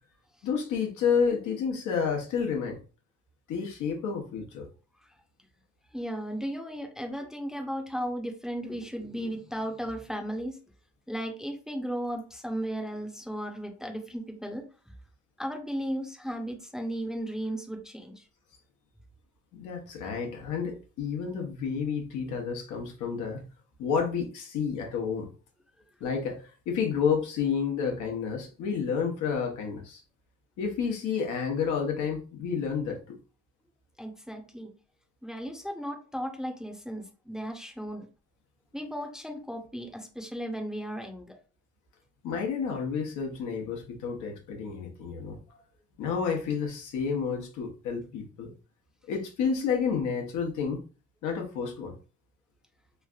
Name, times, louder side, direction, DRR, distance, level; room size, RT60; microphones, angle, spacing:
voice 1, 0.4-2.8 3.5-4.7 19.5-23.4 23.8-25.3 26.0-30.0 30.6-33.2 42.2-45.4 46.0-48.5 49.1-50.8 51.2-51.9, left 6 dB, 80° left, 2 dB, 0.9 m, -30 dB
voice 2, 5.9-10.6 11.1-14.9 15.4-18.2 34.0-34.7 35.2-38.1 38.7-41.4, equal, ahead, 3 dB, 0.6 m, -35 dB
3.2 x 2.4 x 2.3 m, 0.36 s
cardioid pair, 90°, 30 cm